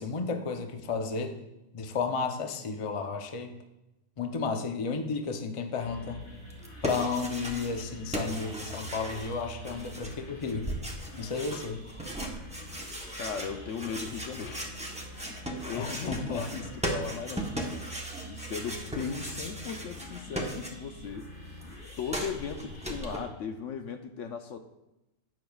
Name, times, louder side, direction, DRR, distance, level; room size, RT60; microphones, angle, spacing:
voice 1, 0.0-1.4 1.7-3.5 4.2-6.2 6.8-10.7 11.2-12.0 15.8-16.5, left 4 dB, 40° left, 5 dB, 0.4 m, -33 dB
sound 1, 5.8-23.3, equal, 85° left, 3.4 m, -46 dB
sound 2, 6.5-7.9 8.1-21.1 21.3-23.2, right 1 dB, 5° right, 0.7 m, -38 dB
voice 2, 13.2-14.6 15.5-17.7 18.2-21.3 22.0-24.6, left 6 dB, 65° left, 7 dB, 0.8 m, -37 dB
10.5 x 8.6 x 2.3 m, 0.95 s
omnidirectional pair, 1.6 m